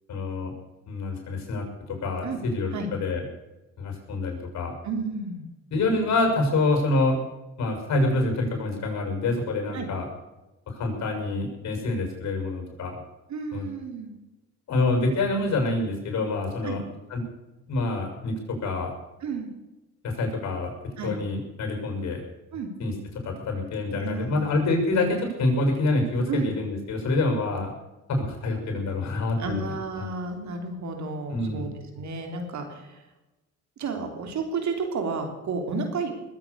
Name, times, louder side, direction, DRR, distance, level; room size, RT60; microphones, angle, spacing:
voice 1, 0.1-0.5 0.9-3.2 3.8-4.7 5.7-7.2 7.6-10.0 10.7-12.9 13.5-13.6 14.7-17.2 17.7-18.9 20.0-20.7 21.0-22.2 22.8-22.9 23.2-27.7 28.1-29.7 30.0-30.1 31.3-31.7, left 2 dB, 65° left, 3 dB, 6.8 m, -26 dB
voice 2, 4.8-5.4 9.7-9.9 13.3-14.1 16.6-16.8 19.2-19.5 21.0-21.1 22.5-22.7 24.0-24.5 26.3-26.5 29.4-31.7 32.0-33.0 33.8-36.3, right 4 dB, 70° right, 5 dB, 3.6 m, -31 dB
21.0 x 8.8 x 6.9 m, 1.0 s
cardioid pair, 90°, 30 cm